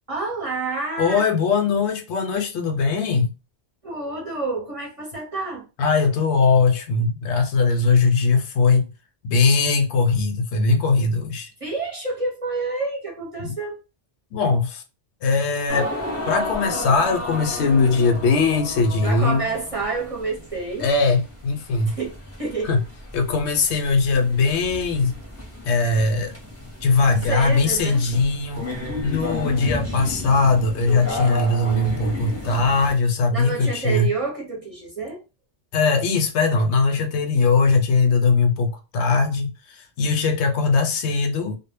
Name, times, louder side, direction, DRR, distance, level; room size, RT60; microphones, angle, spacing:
voice 1, 0.1-1.2 3.8-5.7 11.6-13.7 19.0-20.9 21.9-22.8 27.3-28.0 33.3-35.2, right 3 dB, 40° right, 0.6 m, -28 dB
voice 2, 1.0-3.3 5.8-8.9 9.2-11.5 13.4-13.5 14.3-14.8 15.2-15.9 16.3-19.4 20.8-21.9 22.6-22.8 23.1-25.1 25.6-26.3 26.8-28.6 29.0-34.1 35.7-41.6, left 4 dB, 75° left, 0.8 m, -20 dB
sound 1, 15.7-32.9, left 1 dB, 15° left, 0.6 m, -33 dB
2.1 x 2.0 x 3.2 m
omnidirectional pair, 1.2 m